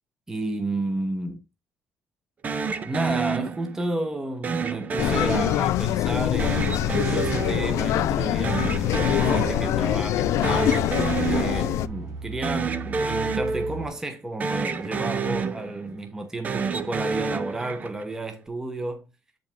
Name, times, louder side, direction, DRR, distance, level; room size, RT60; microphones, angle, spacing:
voice 1, 0.3-1.4 2.8-19.1, right 2 dB, 10° right, 1.0 m, -32 dB
sound 1, 2.4-4.0 4.4-6.0 6.4-8.2 8.4-10.0 10.2-12.0 12.4-14.1 14.4-16.0 16.4-18.1, right 5 dB, 30° right, 0.6 m, -29 dB
sound 2, 5.0-11.9, left 14 dB, 70° left, 0.3 m, -24 dB
sound 3, 6.1-13.9, right 3 dB, 90° right, 2.3 m, -38 dB
7.8 x 5.2 x 3.6 m
cardioid pair, 165°, 5 cm